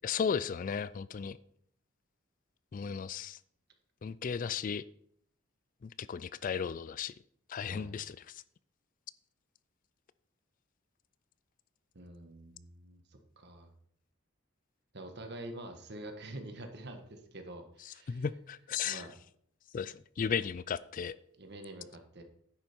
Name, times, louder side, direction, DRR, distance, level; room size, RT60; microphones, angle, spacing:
voice 1, 0.0-1.4 2.7-3.4 4.0-4.8 5.8-7.1 7.5-8.4 18.1-19.1 19.7-21.1, left 7 dB, 40° left, 17 dB, 0.3 m, -35 dB
voice 2, 7.7-8.0 11.9-13.7 14.9-18.2 18.8-19.1 21.4-22.2, right 1 dB, 55° right, 5 dB, 1.7 m, -46 dB
10.5 x 8.7 x 4.5 m, 0.66 s
head